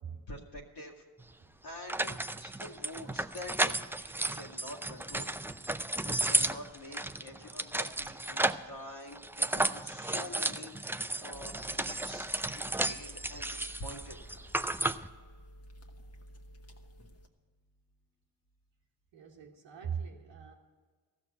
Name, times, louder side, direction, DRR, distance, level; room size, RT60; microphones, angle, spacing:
voice 1, 0.3-1.0 1.6-2.2 2.4-5.3 6.0-14.2, left 1 dB, 65° left, 2.0 m, -47 dB
sound 1, 1.2-1.3 1.9-8.7 9.1-15.1, right 2 dB, 5° right, 0.4 m, -33 dB
sound 2, 11.3-17.3, equal, 35° left, 1.4 m, -53 dB
voice 2, 19.1-20.5, right 7 dB, 85° right, 1.1 m, -41 dB
14.0 x 6.3 x 8.0 m
supercardioid pair, 45°, 44 cm